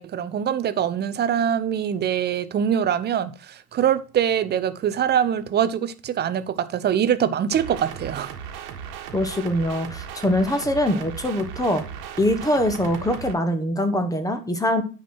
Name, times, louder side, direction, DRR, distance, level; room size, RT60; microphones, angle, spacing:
voice 1, 0.0-8.3, right 9 dB, 25° right, 0.6 m, -23 dB
sound 1, 7.5-13.3, right 8 dB, 55° right, 1.5 m, -36 dB
voice 2, 9.1-11.8 12.2-14.8, left 1 dB, 10° left, 1.2 m, -23 dB
9.0 x 4.9 x 4.3 m
hypercardioid pair, 80°, 46 cm